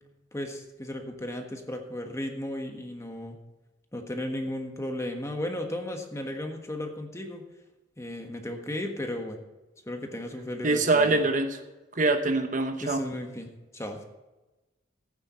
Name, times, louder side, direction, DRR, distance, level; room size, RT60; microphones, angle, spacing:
voice 1, 0.3-3.4 3.9-7.4 8.0-9.4 9.9-11.3 12.8-14.0, left 1 dB, 15° left, 4 dB, 1.4 m, -35 dB
voice 2, 10.6-11.6 11.9-13.0, right 2 dB, 45° right, 6 dB, 1.0 m, -24 dB
15.0 x 9.0 x 4.4 m, 1.1 s
head